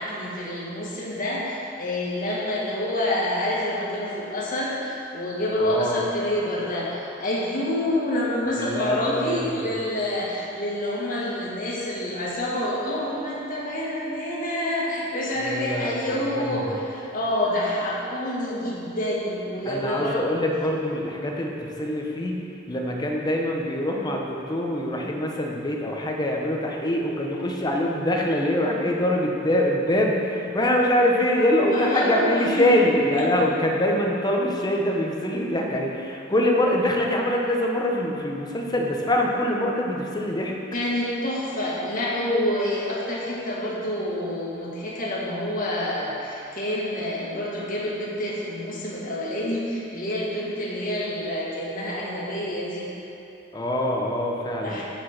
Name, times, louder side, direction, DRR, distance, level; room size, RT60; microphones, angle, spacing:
voice 1, 0.0-20.2 31.7-32.7 33.1-33.2 40.7-52.9 54.6-54.8, left 1 dB, 45° left, -5 dB, 1.8 m, -27 dB
voice 2, 5.6-6.0 8.5-9.6 15.4-16.6 19.6-40.6 53.5-54.8, left 1 dB, 20° left, 0 dB, 0.9 m, -24 dB
7.9 x 6.1 x 6.0 m, 2.9 s
head